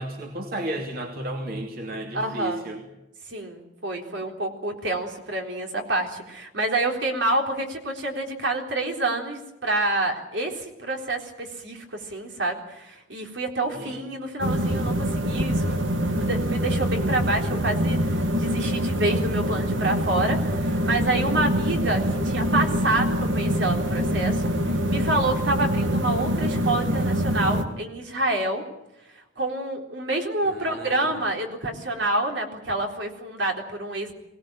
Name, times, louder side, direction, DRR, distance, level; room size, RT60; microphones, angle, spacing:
voice 1, 0.0-2.8 13.6-14.0 30.4-31.2, right 1 dB, 50° right, 2 dB, 2.9 m, -33 dB
voice 2, 2.1-2.6 3.3-28.6 29.1-34.1, right 2 dB, 70° right, 2 dB, 3.8 m, -28 dB
sound 1, 14.4-27.6, equal, 90° right, 2.2 m, -25 dB
24.0 x 18.5 x 8.9 m, 0.91 s
head